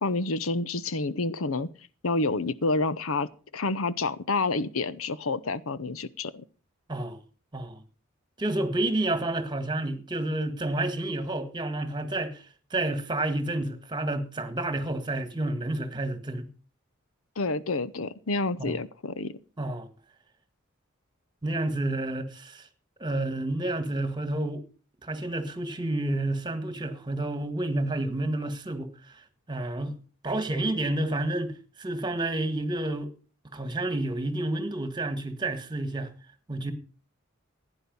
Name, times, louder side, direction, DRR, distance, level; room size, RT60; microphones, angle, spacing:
voice 1, 0.0-1.7 2.0-3.3 3.5-6.4 17.4-19.4, left 3 dB, 75° left, 0.8 m, -28 dB
voice 2, 8.4-12.4 12.7-16.5 18.6-18.8 19.6-19.9 21.4-22.7 23.0-24.6 25.0-28.9 29.5-30.0 30.2-31.5 31.8-33.1 33.5-36.1 36.5-36.7, right 2 dB, 20° right, 1.8 m, -30 dB
16.0 x 10.0 x 5.5 m
head